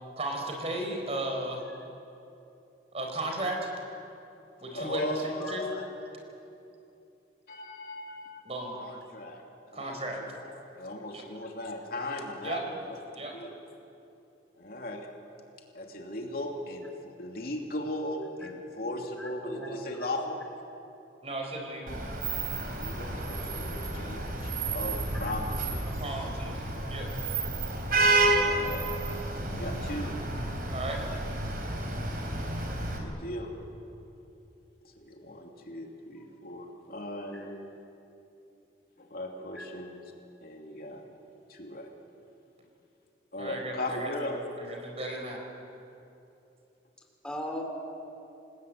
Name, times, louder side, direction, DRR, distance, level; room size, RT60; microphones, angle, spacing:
voice 1, 0.2-1.6 2.9-3.7 4.6-5.6 8.4-8.8 9.7-10.2 11.1-11.2 12.4-12.6 13.1-13.3 19.4-19.8 21.2-21.9 25.9-26.6 26.9-27.1 30.7-31.0 43.4-44.1 44.6-45.4, right 1 dB, 35° right, 2 dB, 4.7 m, -35 dB
voice 2, 4.7-5.8 7.5-8.4 8.8-9.4 9.7-13.5 14.6-15.1 15.7-16.9 17.2-20.4 22.7-26.0 28.4-28.9 29.3-30.1 33.0-33.5 34.8-37.6 39.0-40.0 40.4-41.0 41.5-41.9 43.3-44.3 44.7-44.8, left 1 dB, 55° left, 1 dB, 3.0 m, -38 dB
Vehicle horn car horn honking / Traffic noise roadway noise, 21.9-33.0, right 2 dB, 55° right, 4.1 m, -30 dB
voice 3, 47.2-47.6, left 1 dB, 5° left, 1 dB, 4.0 m, -38 dB
28.5 x 19.5 x 9.3 m, 2.8 s
head